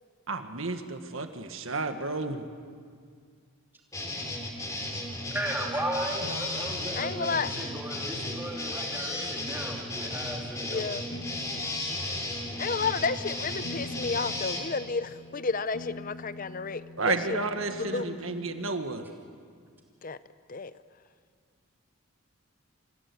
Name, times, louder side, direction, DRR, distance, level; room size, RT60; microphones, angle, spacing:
voice 1, 0.3-2.4 17.0-19.0, right 3 dB, 65° right, 7 dB, 1.7 m, -31 dB
sound 1, 3.9-14.6, left 1 dB, 15° left, 3.0 m, -34 dB
voice 2, 5.3-10.9, right 1 dB, 10° right, -1 dB, 2.9 m, -35 dB
sound 2, 6.2-10.1 11.1-18.8, left 2 dB, 60° left, 1.1 m, -46 dB
voice 3, 6.9-7.5 10.7-11.0 12.6-17.4 17.8-18.2 20.0-20.2 20.5-20.7, left 4 dB, 40° left, 14 dB, 0.6 m, -31 dB
26.0 x 16.0 x 9.7 m, 2.1 s
head